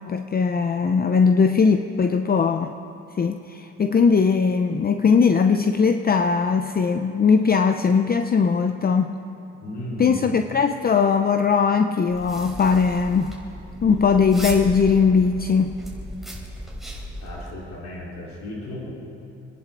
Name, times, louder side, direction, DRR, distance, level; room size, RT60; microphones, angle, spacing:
voice 1, 0.1-2.7 3.2-9.2 10.0-13.4 13.8-15.8, left 5 dB, 30° left, 7 dB, 0.6 m, -20 dB
voice 2, 9.6-10.2 17.2-18.9, left 1 dB, 65° left, -6 dB, 4.0 m, -34 dB
sound 1, 12.1-17.5, equal, ahead, 3.5 m, -36 dB
27.5 x 10.5 x 3.9 m, 2.8 s
cardioid pair, 90°, 30 cm